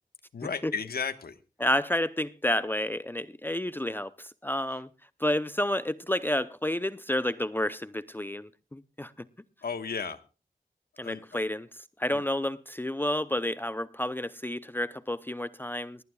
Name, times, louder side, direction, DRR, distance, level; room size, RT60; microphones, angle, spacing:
voice 1, 0.3-1.4 9.6-10.2 11.0-11.4 12.1-12.2, left 6 dB, 85° left, 1.3 m, -34 dB
voice 2, 1.6-4.9 5.2-9.1 11.0-16.0, left 1 dB, 15° left, 0.6 m, -30 dB
19.0 x 18.5 x 2.3 m
wide cardioid pair, 105°, 16 cm